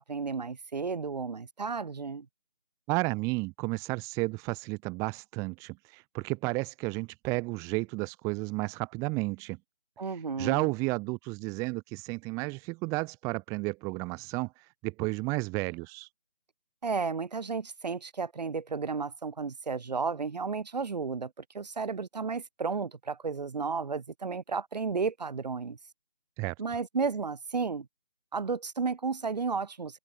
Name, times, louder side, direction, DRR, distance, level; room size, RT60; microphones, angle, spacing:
voice 1, 0.0-2.3 10.0-10.7 16.8-25.8 26.6-27.9 28.3-30.0, right 5 dB, 45° right, 4.8 m, -33 dB
voice 2, 2.9-9.6 10.4-16.1 26.4-26.5, right 26 dB, 10° right, 3.2 m, -32 dB
open air
figure-of-eight pair, 155°, 29 cm